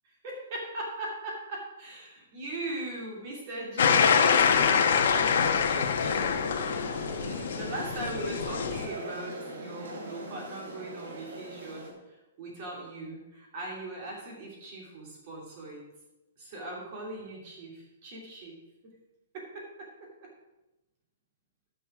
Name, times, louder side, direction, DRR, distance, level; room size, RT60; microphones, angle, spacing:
voice 1, 0.0-6.3 7.2-15.8 16.4-18.5 19.3-19.6, right 1 dB, 35° right, -2 dB, 2.7 m, -39 dB
sound 1, 3.8-8.9, left 6 dB, 60° left, 1.3 m, -25 dB
sound 2, 6.0-11.9, right 1 dB, 85° right, 3.9 m, -42 dB
11.5 x 6.6 x 6.1 m, 1.0 s
hypercardioid pair, 175°, 0 cm